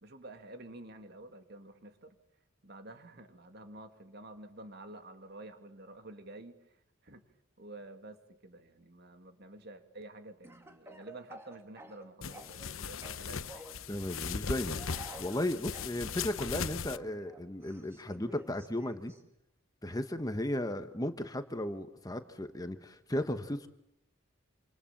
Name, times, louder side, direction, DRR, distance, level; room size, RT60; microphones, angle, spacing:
voice 1, 0.0-2.2 2.6-7.2 7.6-13.8, right 2 dB, 50° right, 7 dB, 2.5 m, -50 dB
Speech / Cough, 10.4-12.7 13.0-13.8 14.7-15.9 16.9-19.2, right 1 dB, 15° right, 2.9 m, -51 dB
sound 1, 12.2-17.0, left 6 dB, 85° left, 1.0 m, -38 dB
voice 2, 13.9-19.1 19.8-23.7, left 1 dB, 20° left, 9 dB, 1.3 m, -35 dB
27.5 x 27.5 x 7.5 m, 0.78 s
head